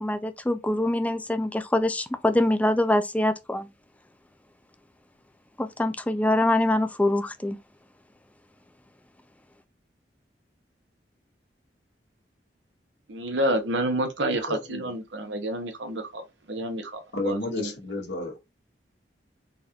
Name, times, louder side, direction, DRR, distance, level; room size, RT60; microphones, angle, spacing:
voice 1, 0.0-3.7 5.6-7.6, left 1 dB, 10° left, 0.4 m, -24 dB
voice 2, 13.1-17.7, right 1 dB, 85° right, 1.0 m, -29 dB
voice 3, 14.5-14.9 17.1-18.5, left 2 dB, 85° left, 1.3 m, -32 dB
4.0 x 2.5 x 2.8 m
head